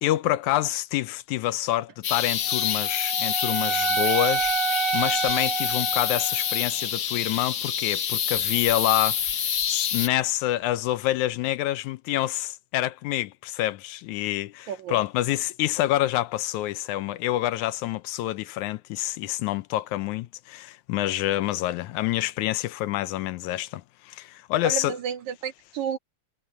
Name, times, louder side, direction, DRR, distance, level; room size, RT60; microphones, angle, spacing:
voice 1, 0.0-4.5 4.9-25.0, left 15 dB, 80° left, 2.0 m, -27 dB
sound 1, 2.0-10.1, left 8 dB, 60° left, 1.1 m, -27 dB
Wind instrument woodwind instrument, 2.5-6.7, right 6 dB, 25° right, 1.3 m, -28 dB
voice 2, 24.6-26.0, right 8 dB, 70° right, 3.1 m, -31 dB
omnidirectional pair, 3.5 m